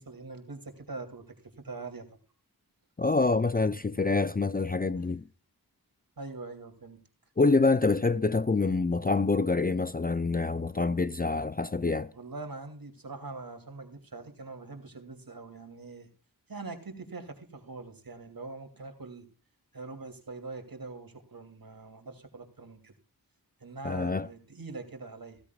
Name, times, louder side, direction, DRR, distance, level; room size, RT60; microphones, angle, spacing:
voice 1, 0.0-2.1 6.2-7.0 10.5-10.6 12.1-16.1 16.5-19.3 19.7-22.9 23.6-25.4, right 3 dB, 65° right, 2.8 m, -43 dB
voice 2, 3.0-5.2 7.4-12.1 23.8-24.3, left 3 dB, 25° left, 0.5 m, -26 dB
16.0 x 14.0 x 2.3 m
wide cardioid pair, 60°, 38 cm